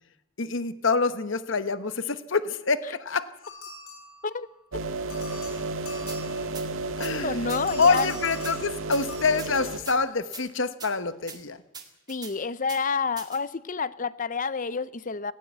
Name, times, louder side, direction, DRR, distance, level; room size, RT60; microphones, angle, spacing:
voice 1, 0.4-3.3 7.0-7.4 7.8-11.6, left 4 dB, 60° left, 12 dB, 1.1 m, -26 dB
sound 1, 3.4-4.6 5.1-6.8 7.5-9.2, left 3 dB, 85° left, 7.4 m, -43 dB
sound 2, 4.7-9.8, right 3 dB, 70° right, 1.7 m, -32 dB
sound 3, 6.1-6.2 6.5-6.7 7.0-7.1 7.5-7.6 8.0-8.5 8.9-9.0 9.4-10.0 10.3-10.4 10.8-10.9 11.3-11.4 11.7-12.3 12.7-12.8 13.2-13.4, right 6 dB, 20° right, 2.2 m, -41 dB
voice 2, 7.2-8.1 12.1-15.3, left 5 dB, 40° left, 17 dB, 0.7 m, -29 dB
18.5 x 17.5 x 8.1 m, 0.94 s
head